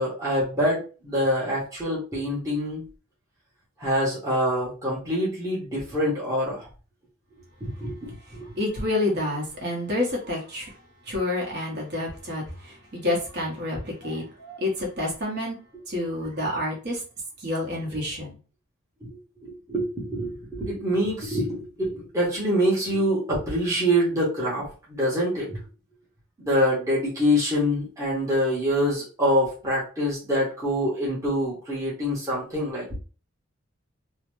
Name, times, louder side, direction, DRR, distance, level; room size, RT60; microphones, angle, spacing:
voice 1, 0.0-2.8 3.8-6.7 7.6-8.5 19.4-25.6 26.4-33.0, equal, 15° right, 0.9 m, -25 dB
voice 2, 8.3-10.7 11.0-15.6 15.9-17.0 17.4-18.3, left 2 dB, 50° right, 1.0 m, -29 dB
2.8 x 2.1 x 3.0 m
head